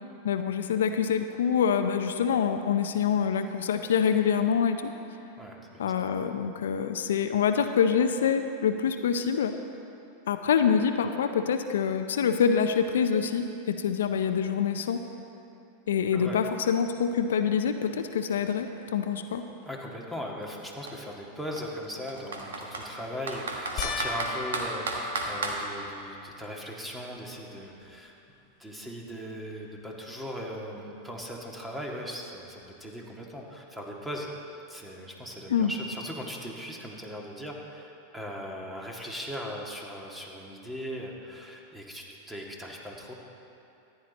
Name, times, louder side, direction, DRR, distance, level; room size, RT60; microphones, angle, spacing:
voice 1, 0.2-4.9 5.8-9.5 10.3-15.0 15.9-19.4 35.5-35.7, left 7 dB, 75° left, 8 dB, 0.5 m, -26 dB
voice 2, 5.4-5.9 16.1-16.4 19.6-28.1 28.6-34.3 34.7-43.1, equal, 5° right, -1 dB, 1.9 m, -39 dB
Computer keyboard, 17.3-17.4 17.7-19.6 20.4-20.5 20.9-21.0 21.6-22.9 23.3-25.6, right 3 dB, 80° right, 1.4 m, -33 dB
sound 1, 23.8-26.4 27.0-27.6 27.9-28.0 31.2-31.3, left 5 dB, 45° left, 0.7 m, -38 dB
14.0 x 9.9 x 4.1 m, 2.8 s
hypercardioid pair, 100°, 0 cm